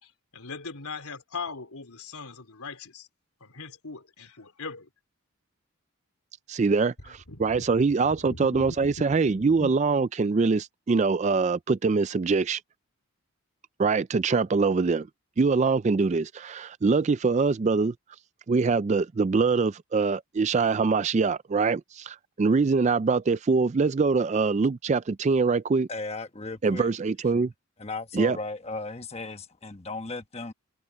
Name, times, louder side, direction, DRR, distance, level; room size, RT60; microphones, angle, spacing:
voice 1, 0.0-3.1 3.4-4.9 7.3-7.7 8.0-9.7, left 4 dB, 80° left, 3.7 m, -40 dB
voice 2, 6.5-12.6 13.8-15.1 15.4-17.9 18.5-25.9 26.6-27.5 28.1-28.4, right 4 dB, 30° right, 0.3 m, -24 dB
voice 3, 25.9-26.9 27.8-30.5, left 3 dB, 30° left, 1.1 m, -36 dB
head